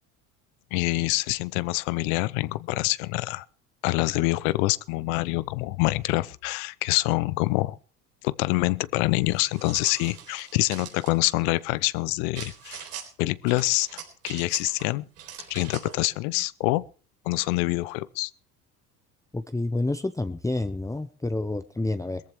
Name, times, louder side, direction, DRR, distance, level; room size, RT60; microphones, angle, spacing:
voice 1, 0.7-3.4 3.8-7.8 8.2-12.9 13.2-15.0 15.5-16.8 17.3-18.3, left 21 dB, 65° left, 0.8 m, -26 dB
sound 1, 9.3-11.2 12.3-13.1 13.5-14.8 15.2-16.0, right 8 dB, 85° right, 4.2 m, -42 dB
voice 2, 19.3-22.2, left 2 dB, 5° left, 0.9 m, -29 dB
22.0 x 14.5 x 3.2 m
hypercardioid pair, 70°, 45 cm